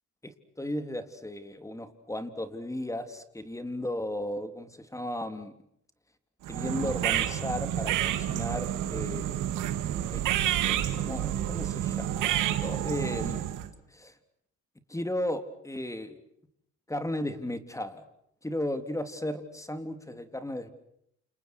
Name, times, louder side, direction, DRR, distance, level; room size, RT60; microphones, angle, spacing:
voice 1, 0.2-5.5 6.5-9.6 10.1-10.2 10.7-13.4 13.9-14.1 14.9-16.2 16.9-18.0 18.4-20.7, left 1 dB, 10° left, 9 dB, 3.5 m, -35 dB
sound 1, 6.4-13.7, right 12 dB, 90° right, 2.5 m, -29 dB
29.5 x 28.5 x 6.3 m, 0.74 s
cardioid pair, 90°, 30 cm